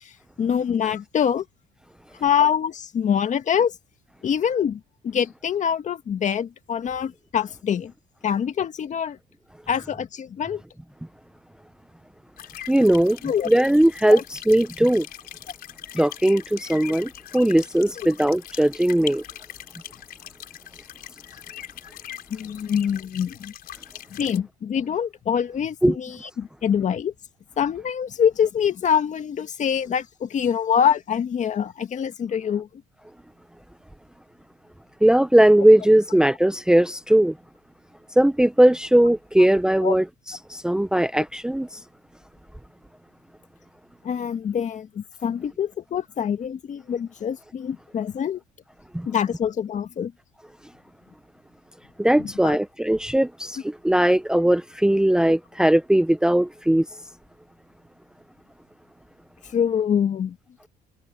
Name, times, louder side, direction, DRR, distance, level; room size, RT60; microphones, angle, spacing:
voice 1, 0.4-1.5 2.2-3.7 4.2-7.9 8.2-9.2 9.7-10.6 13.2-13.5 14.1-14.2 22.3-23.5 24.1-27.1 27.6-32.7 39.8-40.0 44.0-48.4 49.1-50.1 52.2-52.6 59.5-60.4, left 8 dB, 45° left, 1.8 m, -25 dB
sound 1, 12.4-24.4, left 11 dB, 65° left, 4.6 m, -41 dB
voice 2, 12.7-13.2 13.5-15.0 15.9-19.2 25.8-26.0 35.0-37.3 38.2-40.0 40.5-41.7 48.9-49.1 52.0-56.8, right 1 dB, 5° right, 0.8 m, -19 dB
cardioid pair, 110°, 17 cm